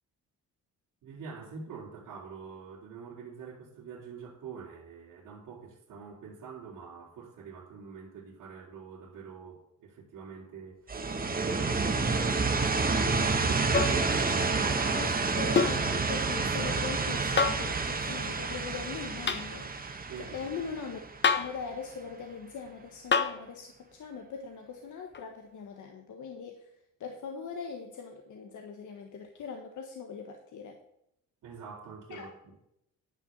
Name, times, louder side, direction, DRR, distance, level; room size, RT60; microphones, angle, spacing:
voice 1, 1.0-11.1 11.5-12.3 13.4-15.0 20.1-20.5 31.4-32.6, right 6 dB, 75° right, -6 dB, 2.9 m, -45 dB
sound 1, 10.9-21.6, right 4 dB, 25° right, 1.3 m, -29 dB
sound 2, 13.7-14.0 15.6-15.8 17.4-17.7 19.3-19.5 21.2-21.6 23.1-23.4 25.1-25.2, left 5 dB, 35° left, 1.0 m, -26 dB
voice 2, 14.9-19.7 20.2-26.7 27.0-30.8 32.1-32.3, left 5 dB, 65° left, 3 dB, 1.4 m, -41 dB
10.5 x 5.6 x 7.4 m, 0.79 s
cardioid pair, 85°, 32 cm